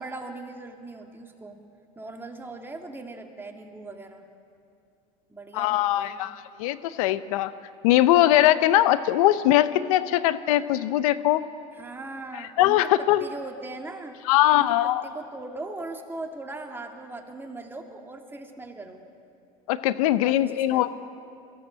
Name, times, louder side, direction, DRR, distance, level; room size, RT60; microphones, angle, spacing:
voice 1, 0.0-1.6 2.0-4.2 5.3-6.2 11.7-14.2 14.5-19.0 20.2-20.9, right 2 dB, 10° right, 2 dB, 2.3 m, -39 dB
voice 2, 5.5-7.5 7.8-11.4 12.6-13.2 14.3-15.0 19.7-20.9, left 14 dB, 80° left, 14 dB, 0.7 m, -21 dB
22.5 x 16.0 x 7.4 m, 2.5 s
supercardioid pair, 100°, 18 cm